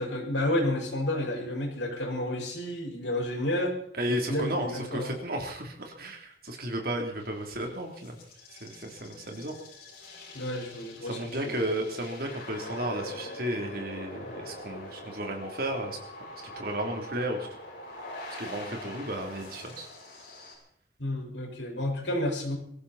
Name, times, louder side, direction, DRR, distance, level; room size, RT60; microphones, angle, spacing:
voice 1, 0.0-3.7 4.1-5.2 10.3-11.7 21.0-22.6, left 1 dB, 80° left, 1 dB, 5.3 m, -31 dB
voice 2, 4.0-8.2 8.6-9.5 11.0-16.0 16.4-17.5 18.4-19.9, right 1 dB, 55° right, 2 dB, 3.4 m, -33 dB
sound 1, 7.2-20.6, left 1 dB, 50° left, 6.8 m, -44 dB
23.5 x 14.5 x 4.3 m, 0.68 s
head